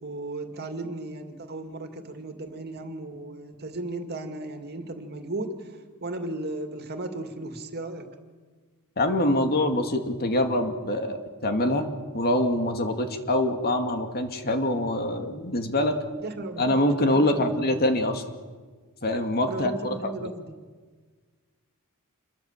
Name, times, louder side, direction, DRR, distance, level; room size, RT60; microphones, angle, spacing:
voice 1, 0.0-8.1 16.2-17.8 19.5-20.6, right 2 dB, 50° right, 6 dB, 2.4 m, -36 dB
voice 2, 9.0-15.9 16.6-18.2 19.0-19.9, left 1 dB, 45° left, 6 dB, 2.4 m, -25 dB
28.0 x 22.5 x 7.4 m, 1.4 s
head